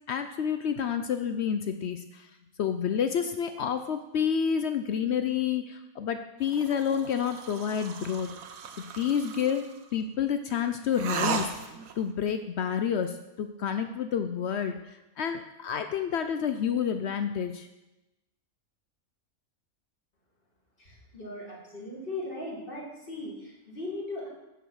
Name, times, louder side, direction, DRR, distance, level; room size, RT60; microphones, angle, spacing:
voice 1, 0.1-2.3 2.6-8.3 9.0-9.7 9.9-17.7, left 8 dB, 65° left, 8 dB, 0.7 m, -29 dB
sound 1, 6.4-9.8 10.9-12.0, right 6 dB, 75° right, 1.2 m, -36 dB
voice 2, 20.8-24.3, left 2 dB, 40° left, -3 dB, 2.3 m, -38 dB
9.0 x 7.0 x 4.7 m, 0.97 s
omnidirectional pair, 1.5 m